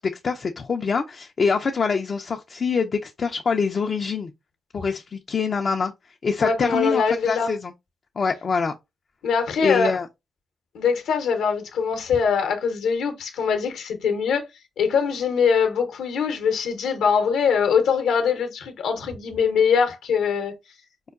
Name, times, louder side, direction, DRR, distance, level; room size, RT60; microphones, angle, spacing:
voice 1, 0.0-4.3 4.7-5.9 6.2-7.7 8.2-8.7 9.6-10.1, left 5 dB, 55° left, 0.3 m, -24 dB
voice 2, 6.4-7.5 9.2-10.0 10.7-14.5 14.8-20.5, left 6 dB, 80° left, 0.7 m, -22 dB
4.6 x 2.2 x 2.3 m
supercardioid pair, 45°, 0 cm